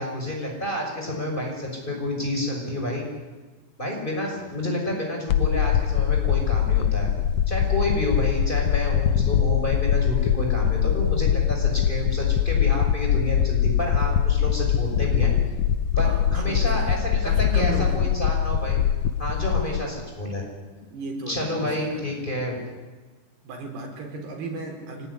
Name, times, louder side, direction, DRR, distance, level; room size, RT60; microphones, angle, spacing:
voice 1, 0.0-3.1 3.8-7.1 7.5-15.3 16.0-18.8 19.2-20.4 21.3-22.6, left 1 dB, 10° left, 0 dB, 6.1 m, -29 dB
sound 1, 5.3-19.8, left 9 dB, 75° left, 1.6 m, -22 dB
voice 2, 16.0-18.0 19.5-19.7 20.8-22.2 23.4-25.1, right 1 dB, 90° right, 2 dB, 6.5 m, -35 dB
24.0 x 20.0 x 9.9 m, 1.3 s
omnidirectional pair, 4.5 m